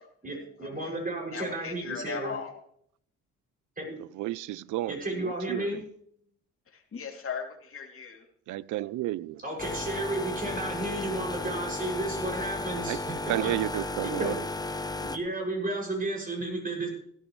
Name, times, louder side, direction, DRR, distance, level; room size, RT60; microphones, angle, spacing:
voice 1, 0.2-2.3 3.8-3.9 4.9-5.8 9.4-13.0 13.2-13.5 14.0-14.4 15.0-16.9, right 2 dB, 30° right, 6.7 m, -33 dB
voice 2, 1.3-2.6 6.7-8.2, left 6 dB, 45° left, 2.9 m, -37 dB
voice 3, 4.0-5.8 8.5-9.4 12.8-13.0 13.3-14.4, right 16 dB, 80° right, 0.5 m, -32 dB
sound 1, 9.6-15.2, left 2 dB, 15° left, 0.8 m, -34 dB
16.5 x 13.0 x 3.3 m
cardioid pair, 90°, 30 cm